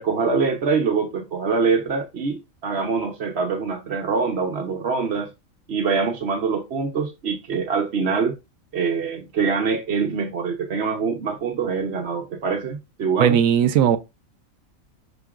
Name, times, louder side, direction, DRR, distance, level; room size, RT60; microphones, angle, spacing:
voice 1, 0.0-5.3 5.7-8.4 8.7-13.4, right 5 dB, 55° right, 1.1 m, -24 dB
voice 2, 13.2-14.0, right 9 dB, 80° right, 1.0 m, -17 dB
6.6 x 6.1 x 2.4 m
omnidirectional pair, 1.4 m